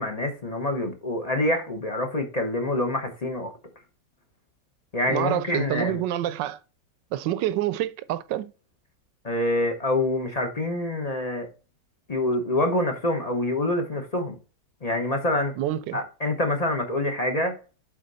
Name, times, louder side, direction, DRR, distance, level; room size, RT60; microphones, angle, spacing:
voice 1, 0.0-3.5 4.9-6.0 9.2-11.5 12.1-14.3 14.8-15.5 15.9-17.6, left 1 dB, 30° left, 0.8 m, -26 dB
voice 2, 5.1-6.6 7.1-8.5 15.6-16.0, right 13 dB, 90° right, 1.3 m, -27 dB
7.5 x 4.3 x 4.0 m
omnidirectional pair, 1.9 m